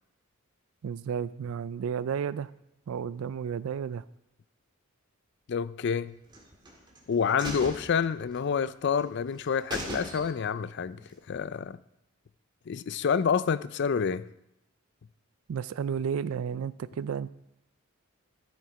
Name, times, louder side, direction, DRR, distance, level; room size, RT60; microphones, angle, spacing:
voice 1, 0.8-2.5 2.9-4.0 15.5-17.3, right 7 dB, 75° right, 0.3 m, -32 dB
voice 2, 5.5-6.2 7.1-11.0 11.3-11.8 12.7-14.2, left 6 dB, 55° left, 0.4 m, -28 dB
sound 1, 6.3-7.0 7.4-8.7 9.0-9.1 9.4-9.5 9.7-10.6 11.0-11.1, right 1 dB, 20° right, 1.7 m, -39 dB
12.5 x 7.4 x 4.8 m
head